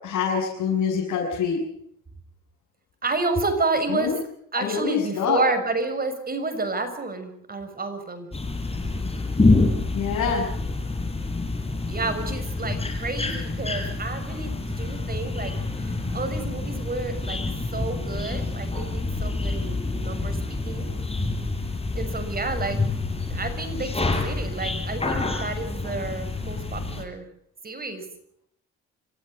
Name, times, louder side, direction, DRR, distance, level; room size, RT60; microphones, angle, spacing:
voice 1, 0.0-1.6 3.9-4.1 4.5-5.4 9.9-10.4, left 6 dB, 70° left, -2 dB, 7.2 m, -25 dB
voice 2, 3.0-4.1 4.5-8.3 11.9-17.4 17.7-20.9 21.9-22.8 23.3-27.2 27.6-28.0, right 3 dB, 30° right, 8 dB, 6.5 m, -30 dB
sound 1, 8.3-27.0, left 3 dB, 20° left, 6.1 m, -27 dB
27.0 x 16.0 x 8.0 m, 0.70 s
cardioid pair, 90°, 30 cm